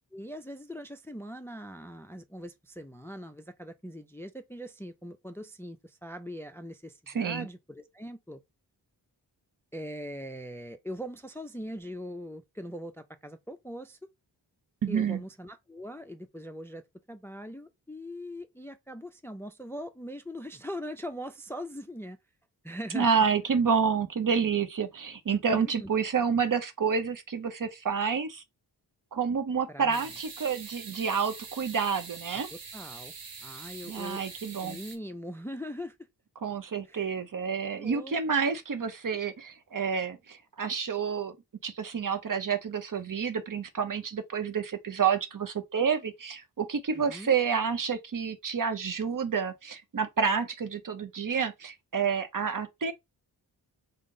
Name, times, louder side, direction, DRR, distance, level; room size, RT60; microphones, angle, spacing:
voice 1, 0.1-8.4 9.7-14.0 14.9-16.8 17.1-22.2 22.6-23.1 25.3-25.9 29.7-30.1 32.3-33.1 33.4-34.2 34.6-36.0 36.9-37.1 37.6-38.1 46.9-47.3, equal, 5° left, 0.4 m, -41 dB
voice 2, 7.1-7.5 14.8-15.2 22.9-28.4 29.1-32.5 33.9-34.8 36.4-41.3 41.6-52.9, right 6 dB, 50° right, 0.7 m, -29 dB
sound 1, 29.9-35.0, right 5 dB, 85° right, 1.0 m, -44 dB
3.6 x 2.1 x 3.7 m
cardioid pair, 60°, 42 cm